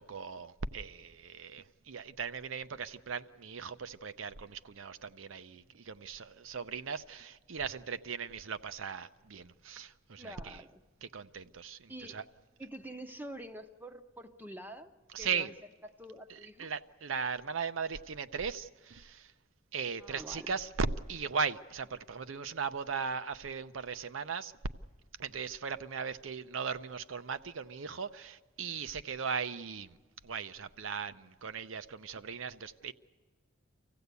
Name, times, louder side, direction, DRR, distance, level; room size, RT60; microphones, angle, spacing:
voice 1, 0.0-10.6 11.0-12.2 15.1-15.5 16.6-19.3 19.7-24.5 25.2-30.0 30.2-32.9, right 5 dB, 75° right, 0.6 m, -38 dB
voice 2, 10.2-10.8 11.9-12.2 12.6-14.9 15.2-15.5 15.8-16.7 20.0-20.5, right 1 dB, 10° right, 0.7 m, -46 dB
25.5 x 15.5 x 8.2 m
head